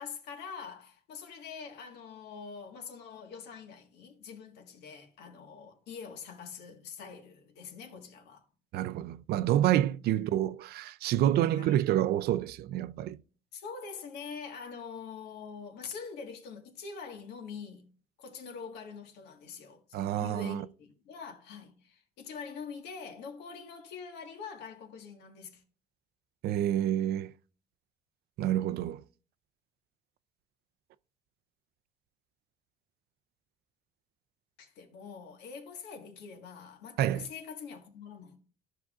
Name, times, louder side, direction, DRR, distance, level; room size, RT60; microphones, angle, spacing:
voice 1, 0.0-8.4 10.2-10.3 11.5-11.8 13.5-17.9 18.2-25.6 34.6-38.4, left 6 dB, 85° left, 1.6 m, -44 dB
voice 2, 8.7-13.2 19.9-20.6 26.4-27.3 28.4-29.0 37.0-37.3, right 12 dB, 70° right, 0.4 m, -28 dB
14.5 x 5.8 x 2.4 m
cardioid pair, 110°, 17 cm